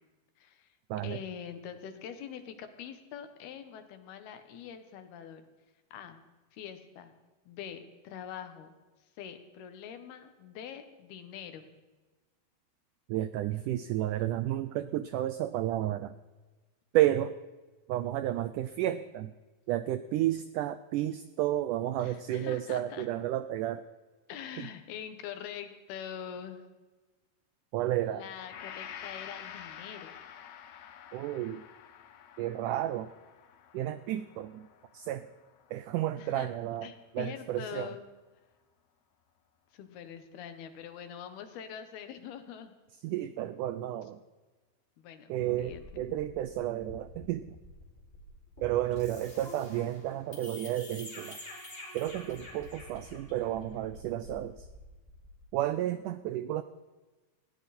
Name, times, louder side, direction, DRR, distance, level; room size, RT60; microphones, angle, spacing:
voice 1, 0.4-0.7 1.0-5.4 5.9-6.2 6.5-7.1 7.5-8.7 9.2-11.7 22.0-23.1 24.3-26.6 28.0-30.1 36.2-38.0 39.7-42.7 45.0-45.3 45.6-45.8, left 8 dB, 85° left, 8 dB, 3.4 m, -44 dB
voice 2, 13.1-16.2 16.9-17.3 17.9-19.3 19.7-23.8 24.6-24.7 27.7-28.2 31.1-31.6 32.4-33.1 33.7-34.7 34.9-35.3 35.7-37.9 43.0-44.2 45.3-47.6 48.6-51.4 51.9-54.7 55.5-56.6, right 13 dB, 90° right, 13 dB, 1.8 m, -32 dB
Gong, 28.5-36.5, left 9 dB, 70° left, 1.8 m, -49 dB
sound 1, 45.4-55.4, left 2 dB, 15° left, 4.2 m, -48 dB
20.0 x 16.5 x 4.3 m, 1.2 s
omnidirectional pair, 4.3 m